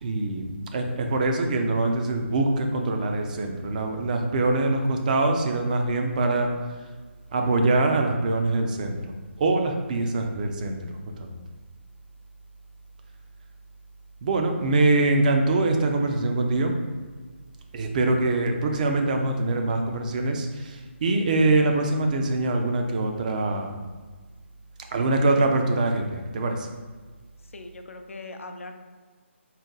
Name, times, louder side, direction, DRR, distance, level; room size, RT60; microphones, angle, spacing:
voice 1, 0.0-6.5 7.3-9.0 9.4-10.8 11.2-11.3 14.2-16.7 17.7-23.7 24.9-26.7, right 2 dB, 35° right, 4 dB, 0.5 m, -24 dB
voice 2, 27.4-28.7, left 2 dB, 85° left, 6 dB, 0.5 m, -40 dB
4.0 x 2.1 x 3.9 m, 1.5 s
figure-of-eight pair, 155°, 7 cm